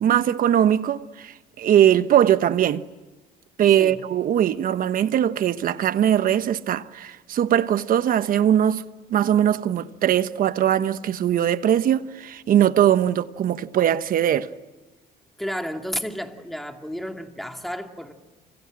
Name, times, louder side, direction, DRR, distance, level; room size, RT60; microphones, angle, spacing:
voice 1, 0.0-2.8 3.6-8.8 9.1-14.5, right 10 dB, 55° right, 1.2 m, -20 dB
voice 2, 15.4-18.1, equal, ahead, 2.6 m, -32 dB
29.5 x 26.5 x 7.6 m
cardioid pair, 110°, 17 cm